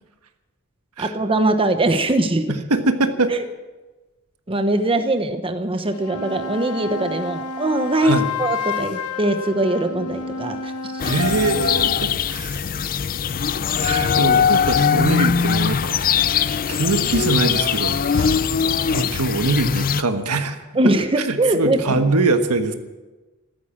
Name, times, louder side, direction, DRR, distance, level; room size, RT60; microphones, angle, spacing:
voice 1, 1.0-2.5 3.3-3.4 4.5-8.1 8.4-10.9 20.7-22.0, right 2 dB, 25° right, 8 dB, 1.0 m, -21 dB
voice 2, 2.5-3.3 8.0-8.3 11.0-12.6 13.7-16.0 16.7-18.4 18.9-20.6 21.2-22.7, right 3 dB, 85° right, 7 dB, 1.4 m, -23 dB
sound 1, 5.8-12.0, left 4 dB, 85° left, 1.0 m, -30 dB
sound 2, 11.0-20.0, left 7 dB, 40° left, 0.4 m, -21 dB
14.5 x 13.5 x 7.2 m, 1.2 s
head